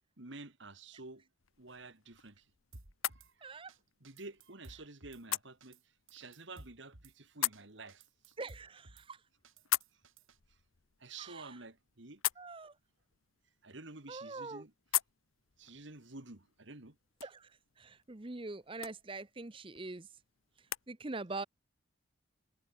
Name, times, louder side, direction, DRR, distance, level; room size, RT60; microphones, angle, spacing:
voice 1, 0.2-1.2 1.6-2.4 3.1-3.3 4.0-5.8 6.1-8.3 11.0-12.2 13.6-14.7 15.6-17.0, right 3 dB, 65° right, 2.3 m, -50 dB
sound 1, 1.4-20.9, left 15 dB, 85° left, 1.0 m, -43 dB
Drum kit / Snare drum, 2.7-3.3 3.7-3.8 4.0-5.2 5.6-5.8 6.1-7.1 7.5-7.6 7.9-9.1 9.4-10.4, right 2 dB, 85° right, 3.4 m, -56 dB
voice 2, 3.4-3.7 8.4-9.2 11.2-11.6 12.4-12.7 14.1-14.6 17.2-17.5 17.8-20.1 20.9-21.4, right 3 dB, 25° right, 0.7 m, -43 dB
head